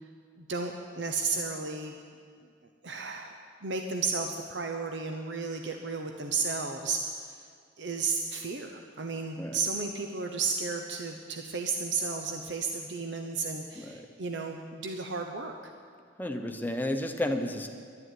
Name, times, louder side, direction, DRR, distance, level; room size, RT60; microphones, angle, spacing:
voice 1, 0.4-2.0 2.8-3.3 3.6-7.4 7.8-15.6, right 4 dB, 65° right, 4 dB, 0.9 m, -33 dB
voice 2, 13.7-14.1 16.2-17.7, left 1 dB, 10° left, 5 dB, 0.9 m, -32 dB
11.5 x 11.0 x 9.4 m, 2.1 s
head